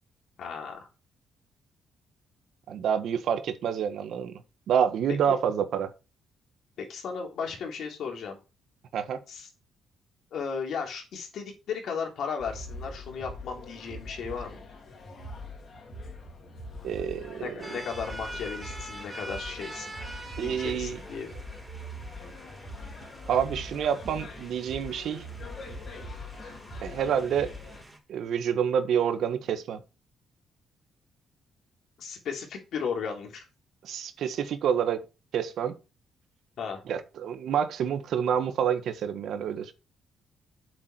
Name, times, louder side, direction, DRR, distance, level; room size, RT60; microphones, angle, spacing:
voice 1, 0.4-0.9 5.3-5.4 6.8-8.4 9.3-9.5 10.3-14.6 17.4-19.9 20.4-21.3 32.0-33.4 36.6-36.8, left 6 dB, 70° left, 3.6 m, -35 dB
voice 2, 2.7-4.4 4.7-5.9 8.9-9.2 16.8-17.8 20.4-21.0 23.3-25.3 26.8-27.5 28.1-29.8 33.8-35.0 35.3-35.7 36.9-39.7, right 8 dB, 70° right, 1.5 m, -28 dB
sound 1, 12.4-27.8, left 1 dB, 50° left, 3.7 m, -42 dB
sound 2, 17.6-28.0, right 1 dB, 10° right, 4.7 m, -45 dB
8.3 x 7.3 x 4.5 m
cardioid pair, 90°, 0 cm